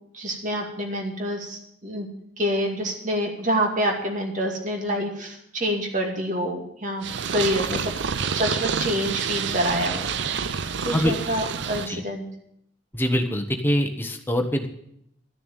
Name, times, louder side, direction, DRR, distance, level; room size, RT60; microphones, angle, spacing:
voice 1, 0.1-2.1 2.4-7.0 7.3-7.9 8.3-10.1 10.8-12.2, equal, 40° right, 2 dB, 2.3 m, -27 dB
Purr, 7.0-11.9, right 6 dB, 65° right, 0.6 m, -28 dB
voice 2, 12.9-14.7, equal, 10° left, 5 dB, 1.1 m, -24 dB
12.5 x 6.9 x 9.0 m, 0.74 s
head